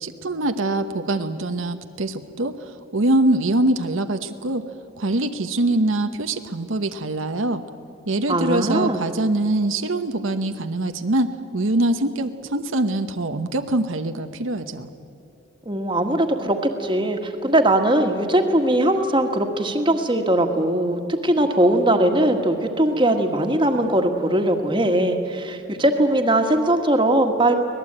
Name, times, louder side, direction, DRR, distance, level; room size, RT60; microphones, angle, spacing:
voice 1, 0.0-4.6 5.0-7.6 8.1-14.9, right 2 dB, 80° right, 7 dB, 1.0 m, -23 dB
voice 2, 8.3-9.0 15.6-27.5, right 1 dB, 25° right, 5 dB, 1.7 m, -20 dB
24.5 x 19.0 x 8.8 m, 2.8 s
head